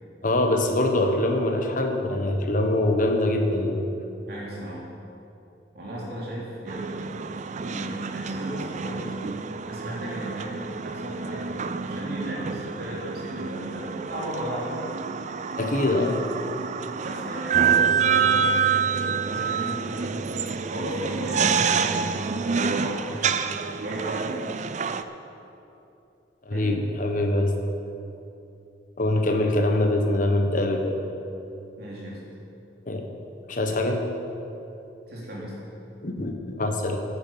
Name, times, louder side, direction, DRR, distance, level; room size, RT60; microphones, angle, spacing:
voice 1, 0.2-3.8 15.6-16.2 26.5-27.5 29.0-31.0 32.9-33.1 33.5-34.1 36.0-37.0, left 1 dB, 45° left, 4 dB, 1.1 m, -24 dB
voice 2, 4.3-4.8 5.7-7.3 7.5-9.2 9.7-14.7 17.0-20.1 20.7-24.3 26.5-26.8 31.8-32.2 35.1-35.5, equal, 60° right, -5 dB, 3.3 m, -35 dB
sound 1, 6.7-25.0, right 6 dB, 40° right, 0.4 m, -27 dB
9.6 x 9.5 x 7.4 m, 2.8 s
head